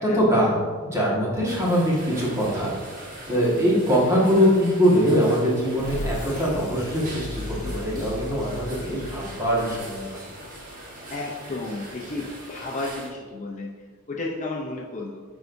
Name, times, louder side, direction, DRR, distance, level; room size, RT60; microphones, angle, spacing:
voice 1, 0.0-2.7 3.3-10.2, equal, 15° right, -6 dB, 1.6 m, -22 dB
sound 1, 1.5-13.1, right 1 dB, 40° right, 1.3 m, -41 dB
sound 2, 5.8-11.3, left 1 dB, 85° left, 0.6 m, -37 dB
voice 2, 7.6-8.1 11.1-13.7 14.1-15.2, left 2 dB, 35° left, -1 dB, 0.6 m, -33 dB
9.4 x 4.6 x 2.6 m, 1.5 s
head